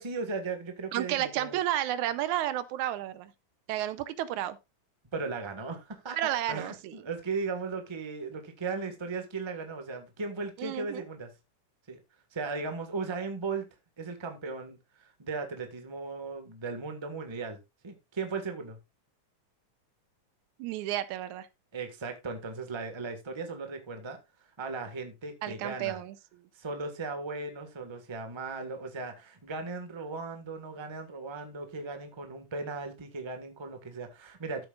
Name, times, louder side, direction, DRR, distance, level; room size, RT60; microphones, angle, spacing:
voice 1, 0.0-1.6 5.1-6.2 6.5-11.3 11.9-12.0 12.3-13.7 14.0-18.8 21.7-24.2 24.6-26.0 26.5-34.6, right 4 dB, 20° right, 0.8 m, -37 dB
voice 2, 0.9-3.3 3.7-4.6 6.1-7.0 10.6-11.0 20.6-21.5 25.4-26.2, right 13 dB, 90° right, 2.1 m, -32 dB
13.5 x 8.1 x 2.4 m
omnidirectional pair, 3.4 m